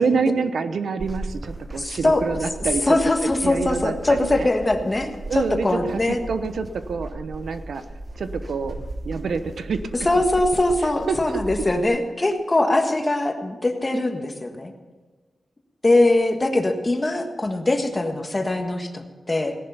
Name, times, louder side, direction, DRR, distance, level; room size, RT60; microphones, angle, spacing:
voice 1, 0.0-3.0 3.4-4.5 5.3-7.8 8.2-8.8 9.0-9.8 11.1-11.4, right 5 dB, 85° right, 10 dB, 0.9 m, -26 dB
sound 1, 1.0-11.8, right 2 dB, 35° right, 1.1 m, -36 dB
voice 2, 1.7-2.2 2.9-6.2 10.0-14.7 15.8-19.6, left 2 dB, 25° left, 5 dB, 1.5 m, -22 dB
17.0 x 11.0 x 5.7 m, 1.4 s
wide cardioid pair, 130°, 0 cm